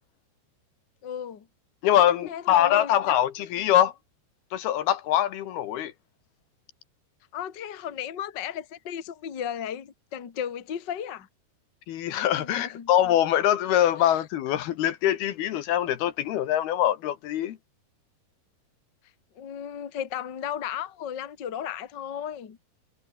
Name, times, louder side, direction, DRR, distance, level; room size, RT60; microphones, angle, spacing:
voice 1, 1.0-1.5 1.9-2.9 7.3-11.3 12.3-12.9 14.0-14.2 19.4-22.6, left 9 dB, 40° left, 1.8 m, -35 dB
voice 2, 1.8-3.9 4.5-5.9 11.9-17.6, left 11 dB, 70° left, 3.1 m, -23 dB
omnidirectional pair, 4.9 m